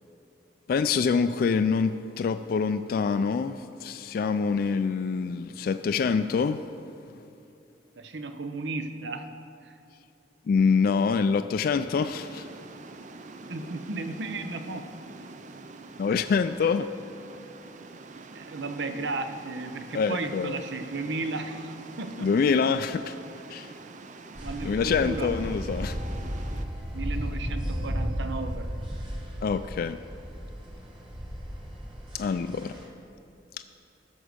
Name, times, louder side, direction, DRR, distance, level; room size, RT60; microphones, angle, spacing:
voice 1, 0.7-6.7 10.5-12.5 16.0-16.9 19.9-20.6 22.2-23.1 23.5-23.7 24.6-26.0 29.4-30.0 32.1-32.7, left 5 dB, 55° left, 10 dB, 0.3 m, -25 dB
voice 2, 8.0-9.3 9.6-9.7 13.5-14.9 18.3-22.3 24.4-25.3 26.9-28.7, right 3 dB, 80° right, 8 dB, 0.7 m, -34 dB
sound 1, 11.9-26.7, right 3 dB, 45° right, 0.5 m, -45 dB
sound 2, 24.3-32.9, equal, 30° right, 1.7 m, -34 dB
14.0 x 6.4 x 5.1 m, 2.6 s
head